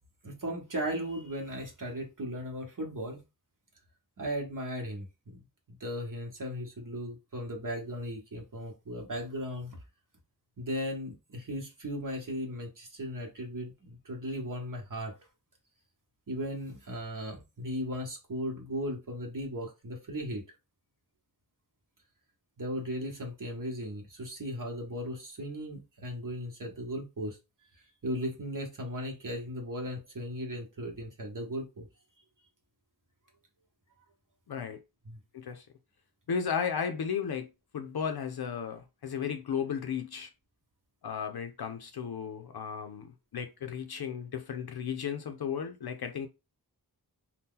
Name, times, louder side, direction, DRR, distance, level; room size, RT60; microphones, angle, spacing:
voice 1, 0.2-3.2 4.2-5.1 5.3-5.4 5.7-9.8 10.6-15.1 16.3-20.4 22.6-27.4 28.0-31.9 35.1-35.2, equal, 55° right, 1.0 m, -37 dB
voice 2, 34.5-34.8 35.3-35.7 36.3-37.5 37.7-40.3 41.0-46.3, left 7 dB, 70° left, 0.5 m, -34 dB
2.8 x 2.2 x 3.6 m
wide cardioid pair, 70°, 39 cm